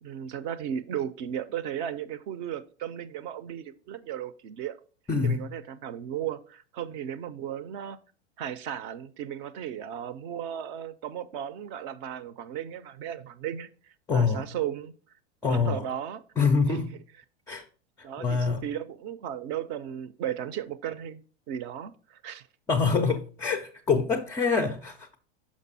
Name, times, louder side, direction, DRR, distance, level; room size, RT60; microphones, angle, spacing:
voice 1, 0.0-4.8 5.2-8.0 8.4-14.9 15.4-16.2 16.7-16.8 18.0-21.2 21.5-22.5, right 9 dB, 45° right, 0.6 m, -35 dB
voice 2, 5.1-5.5 14.1-14.5 15.4-15.9 16.4-17.0 17.5-17.6 18.2-18.6 22.7-25.1, left 5 dB, 10° left, 0.4 m, -25 dB
6.2 x 5.1 x 4.0 m
hypercardioid pair, 120°, 34 cm